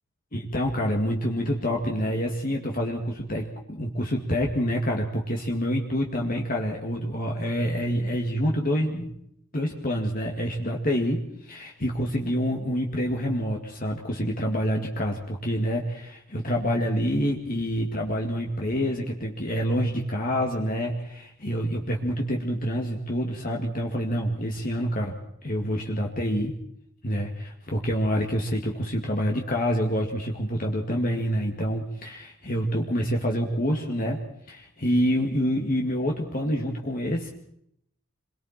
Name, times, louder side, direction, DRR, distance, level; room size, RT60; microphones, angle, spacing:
voice 1, 0.3-9.1 9.5-25.1 25.4-26.5 27.0-34.2 34.5-37.3, equal, 40° left, 1 dB, 2.2 m, -27 dB
27.5 x 23.0 x 4.5 m, 0.72 s
head